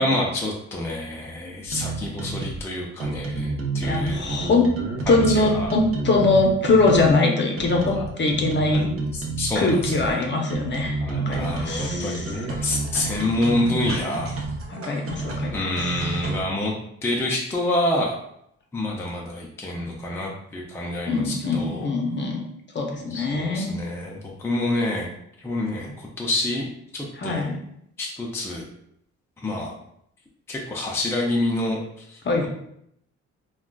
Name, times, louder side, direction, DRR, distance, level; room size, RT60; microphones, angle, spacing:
voice 1, 0.0-4.4 5.1-5.7 7.9-8.1 8.7-10.2 11.0-14.3 15.5-16.7 17.0-18.2 18.7-21.9 23.1-25.1 25.4-26.7 26.9-27.5 28.0-28.7 29.4-29.7 30.5-32.5, left 1 dB, 10° left, -2 dB, 0.4 m, -27 dB
sound 1, 1.7-2.6 3.0-7.1 7.6-10.1 10.5-16.4, right 3 dB, 50° right, 0.7 m, -30 dB
voice 2, 3.8-4.8 5.1-8.9 9.6-12.3 14.7-15.6 21.1-22.4 22.7-23.7 27.2-27.6 32.2-32.5, left 3 dB, 40° left, 1 dB, 0.7 m, -22 dB
3.6 x 2.3 x 2.3 m, 0.73 s
cardioid pair, 90°, 30 cm